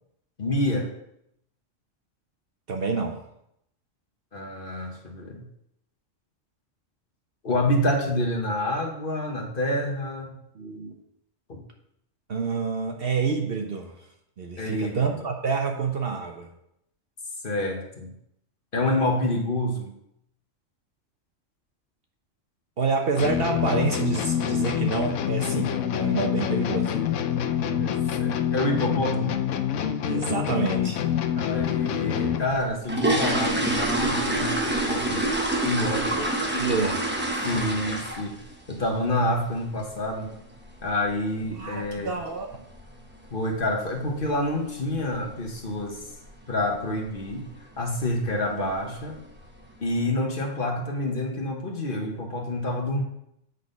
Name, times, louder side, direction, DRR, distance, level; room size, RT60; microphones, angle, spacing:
voice 1, 0.4-0.9 4.3-5.4 7.4-10.3 11.5-11.6 14.6-15.1 17.4-18.1 18.7-19.9 27.6-29.3 31.4-35.3 35.6-36.3 37.4-38.4 38.7-40.3 40.8-42.2 43.3-46.0 46.5-47.5 47.8-49.2 49.8-53.0, left 1 dB, 45° left, 2 dB, 1.3 m, -28 dB
voice 2, 2.7-3.2 10.5-10.9 12.3-14.0 14.4-16.5 22.8-27.0 30.1-31.0 36.2-36.3 36.5-37.0 41.5-42.5, right 4 dB, 55° right, 3 dB, 0.9 m, -28 dB
sound 1, 23.2-32.6, left 9 dB, 75° left, 0.9 m, -26 dB
sound 2, 32.5-38.4 38.7-39.0 39.3-39.4 39.8-39.9 40.3-40.5 40.8-40.9 41.5-41.6 41.8-42.0 42.5-42.8 43.1-43.2 43.6-43.8 44.1-44.2 44.6-44.7 45.4-45.7 46.0-46.3 46.7-46.8 47.2-47.3 48.1-48.2 48.6-49.1 49.6-49.7, right 1 dB, 10° right, 0.8 m, -26 dB
8.2 x 3.9 x 5.2 m, 0.76 s
omnidirectional pair, 1.3 m